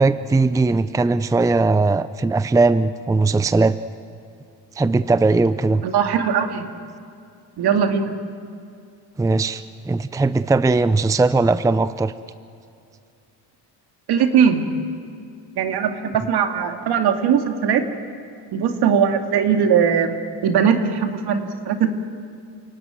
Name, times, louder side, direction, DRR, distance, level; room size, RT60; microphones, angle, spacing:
voice 1, 0.0-3.8 4.8-5.8 9.2-12.1, right 3 dB, 10° right, 14 dB, 0.5 m, -19 dB
voice 2, 5.8-6.7 7.6-8.1 14.1-14.6 15.6-17.9 18.5-21.9, right 7 dB, 65° right, 6 dB, 2.4 m, -20 dB
28.5 x 17.5 x 9.3 m, 2.5 s
cardioid pair, 105°, 41 cm